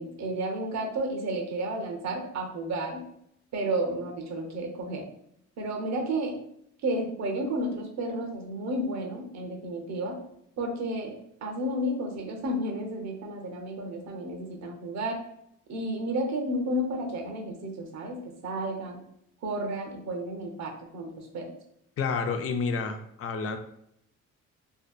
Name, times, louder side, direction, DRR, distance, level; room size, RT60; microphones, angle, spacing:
voice 1, 0.0-3.1 3.5-5.1 5.6-6.4 6.8-10.2 10.6-15.2 15.7-19.0 19.4-21.5, right 1 dB, 65° right, 2 dB, 0.7 m, -32 dB
voice 2, 22.0-23.6, left 5 dB, 50° left, 7 dB, 0.4 m, -29 dB
2.6 x 2.2 x 2.3 m, 0.73 s
cardioid pair, 90°, 30 cm